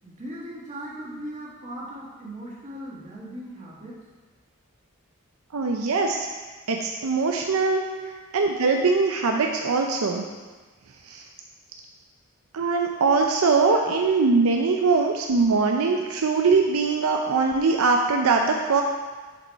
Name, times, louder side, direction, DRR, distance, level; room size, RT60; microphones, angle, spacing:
voice 1, 0.0-4.0 7.8-8.1, right 1 dB, 35° right, -5 dB, 1.6 m, -38 dB
voice 2, 5.5-6.3 6.7-7.8 8.3-10.2 11.1-11.2 12.5-18.8, right 4 dB, 80° right, 2 dB, 0.6 m, -22 dB
7.2 x 5.3 x 4.5 m, 1.3 s
head